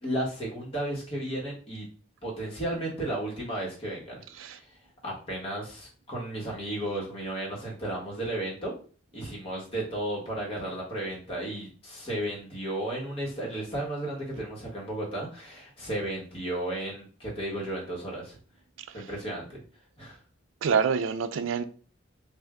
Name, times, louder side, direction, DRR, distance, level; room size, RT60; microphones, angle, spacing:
voice 1, 0.0-1.8 2.2-4.7 5.0-8.7 9.1-18.4 18.9-19.5 20.0-20.2, right 1 dB, 30° left, 1.3 m, -34 dB
voice 2, 20.6-21.6, right 6 dB, 80° right, 0.3 m, -26 dB
3.4 x 2.5 x 3.6 m
head